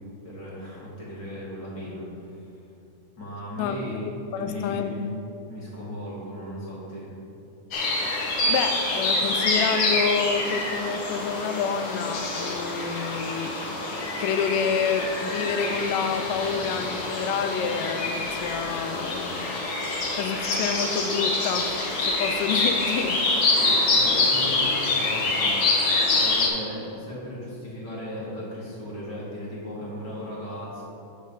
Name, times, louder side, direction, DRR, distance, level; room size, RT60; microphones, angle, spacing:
voice 1, 0.2-2.4 3.2-5.1 5.5-7.1 23.6-25.5 26.1-30.8, left 1 dB, 35° left, -7 dB, 2.3 m, -36 dB
voice 2, 3.6-4.9 8.2-13.6 13.9-21.8 22.0-23.2, left 6 dB, 85° left, 9 dB, 2.2 m, -29 dB
sound 1, 7.7-26.5, left 2 dB, 60° left, 1.3 m, -26 dB
9.5 x 5.7 x 4.9 m, 2.7 s
omnidirectional pair, 3.7 m